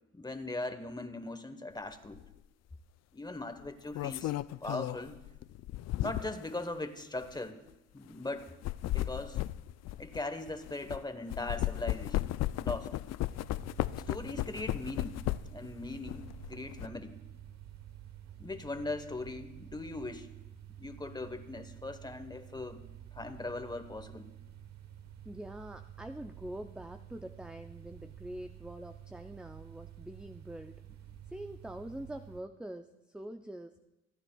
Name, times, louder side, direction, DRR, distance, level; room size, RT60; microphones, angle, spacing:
voice 1, 0.1-2.2 3.1-4.3 4.6-5.2 6.0-7.6 7.9-8.5 8.9-9.4 10.0-13.0 14.1-15.2 15.5-17.2 18.4-20.3 20.8-22.9 23.1-24.3, left 2 dB, 15° left, 9 dB, 1.2 m, -40 dB
sound 1, 2.1-2.3 3.6-6.5 7.2-7.3 8.4-11.0 11.3-15.7 16.0-16.9, left 15 dB, 60° left, 0.4 m, -35 dB
sound 2, 13.3-32.4, right 11 dB, 60° right, 1.2 m, -50 dB
voice 2, 25.2-30.8 31.3-33.8, right 1 dB, 5° right, 7 dB, 0.5 m, -44 dB
26.0 x 9.8 x 2.3 m, 0.96 s
supercardioid pair, 70°, 30 cm